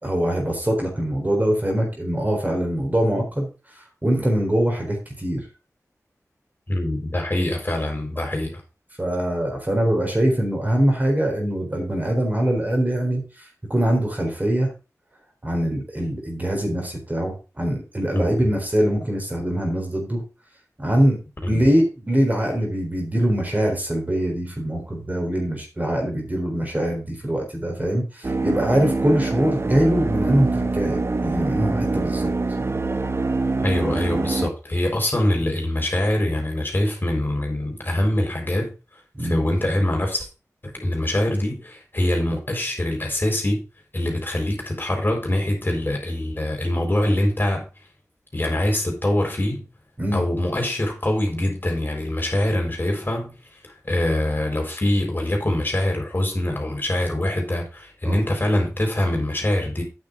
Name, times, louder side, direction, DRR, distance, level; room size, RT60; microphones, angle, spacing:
voice 1, 0.0-3.5 3.8-5.4 9.0-14.7 15.4-20.2 20.8-21.2 21.5-32.3 39.2-39.4 50.0-50.2 58.0-58.2, right 1 dB, 30° right, 4.0 m, -23 dB
voice 2, 6.7-8.6 18.1-18.3 21.4-21.6 33.6-38.7 39.2-40.3 40.6-43.6 43.9-47.7 48.3-49.7 50.1-53.3 53.6-59.8, left 1 dB, 35° left, 4.2 m, -24 dB
sound 1, 28.2-34.5, right 3 dB, 45° right, 0.8 m, -24 dB
9.3 x 6.4 x 4.8 m
wide cardioid pair, 60°, 6 cm